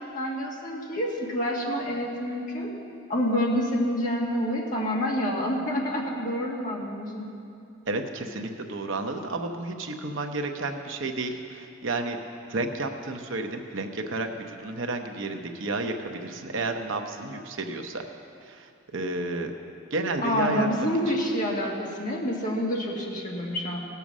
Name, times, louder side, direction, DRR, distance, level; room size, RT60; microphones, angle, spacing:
voice 1, 0.1-2.7 3.1-7.3 20.2-23.8, equal, 40° left, -3 dB, 1.9 m, -28 dB
voice 2, 7.9-12.2 12.5-18.0 18.4-19.5 19.9-21.1, right 2 dB, 70° right, 5 dB, 0.9 m, -31 dB
17.5 x 6.9 x 6.1 m, 2.5 s
head